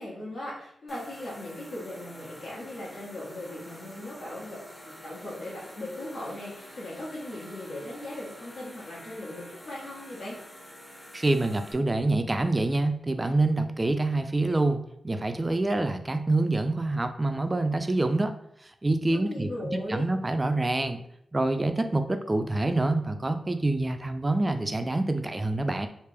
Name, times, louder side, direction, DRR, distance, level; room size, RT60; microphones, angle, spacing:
voice 1, 0.0-4.6 4.8-10.4 19.2-20.1, left 1 dB, 75° left, -6 dB, 1.4 m, -38 dB
sound 1, 0.9-11.7, equal, 10° left, 0.7 m, -48 dB
voice 2, 11.1-18.3 18.8-19.5 19.9-21.0 21.3-25.9, right 2 dB, 25° right, 8 dB, 0.4 m, -26 dB
3.3 x 2.4 x 3.4 m, 0.72 s
cardioid pair, 85°, 0 cm